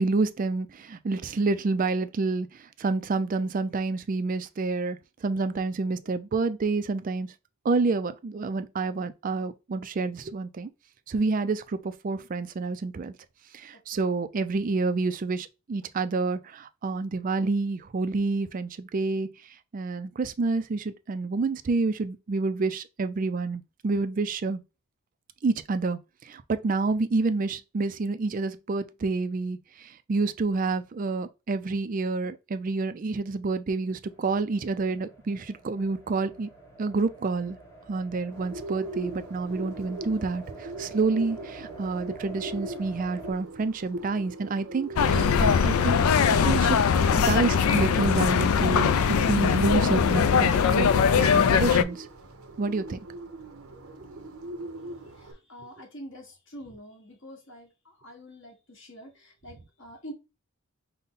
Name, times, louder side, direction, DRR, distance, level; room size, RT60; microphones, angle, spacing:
voice 1, 0.0-2.5 2.8-7.3 7.6-10.7 11.1-13.1 13.5-19.3 19.7-24.6 25.4-36.5 36.8-37.6 37.9-46.0 46.4-46.8 47.2-52.1 52.6-53.0, right 3 dB, 35° right, 0.3 m, -28 dB
sound 1, 34.1-43.3, right 2 dB, 15° left, 1.0 m, -47 dB
Bird, 38.3-55.3, right 1 dB, 75° right, 0.7 m, -41 dB
sound 2, 45.0-51.8, left 6 dB, 75° left, 0.4 m, -21 dB
voice 2, 55.1-60.1, equal, 60° left, 1.5 m, -46 dB
5.3 x 2.1 x 4.0 m
head